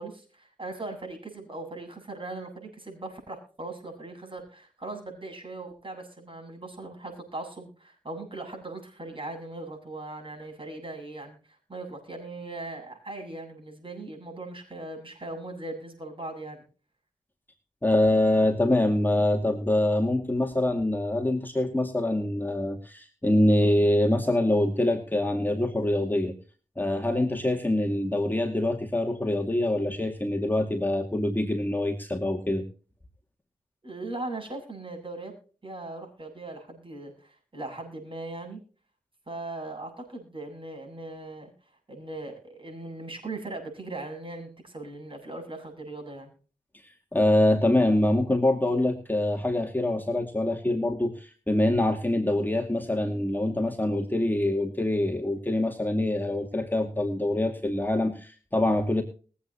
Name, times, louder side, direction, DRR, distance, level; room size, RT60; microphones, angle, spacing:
voice 1, 0.0-16.6 33.8-35.3 35.6-38.6 39.3-41.5 41.9-46.3, right 2 dB, 35° right, 3 dB, 7.7 m, -39 dB
voice 2, 17.8-26.4 26.8-32.6 47.1-59.0, left 1 dB, 15° left, 2 dB, 2.2 m, -25 dB
21.5 x 8.6 x 2.9 m, 0.38 s
cardioid pair, 40°, 14 cm